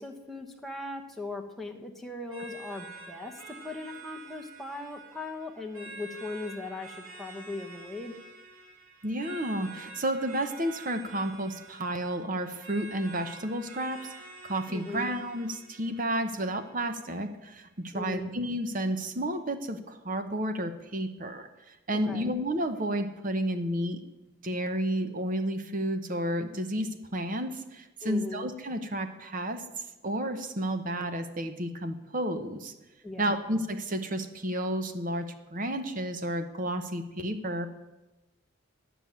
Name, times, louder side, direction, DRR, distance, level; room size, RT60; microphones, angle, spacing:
voice 1, 0.0-8.2 14.7-15.1 17.9-18.3 21.9-22.3 28.0-28.5 33.0-33.4, left 2 dB, ahead, 1 dB, 1.0 m, -39 dB
sound 1, 2.3-17.3, right 3 dB, 75° right, 2.9 m, -48 dB
voice 2, 9.0-14.1 14.4-24.0 24.4-29.6 30.0-32.7 33.2-37.7, right 1 dB, 40° right, 8 dB, 0.9 m, -31 dB
11.5 x 6.0 x 9.2 m, 1.0 s
head